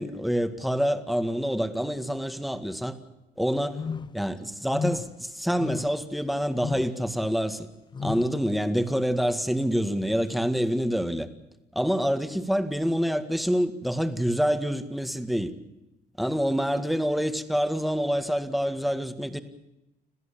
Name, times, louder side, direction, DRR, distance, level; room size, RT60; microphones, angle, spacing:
voice 1, 0.0-3.0 3.4-3.8 4.1-7.7 8.0-11.3 11.7-15.5 16.2-19.4, equal, ahead, 1.9 m, -26 dB
sound 1, 3.7-4.3 4.7-5.2 5.6-6.1 6.6-7.0 7.9-8.4, left 5 dB, 25° left, 0.7 m, -33 dB
27.0 x 15.5 x 8.7 m
cardioid pair, 110°, 17 cm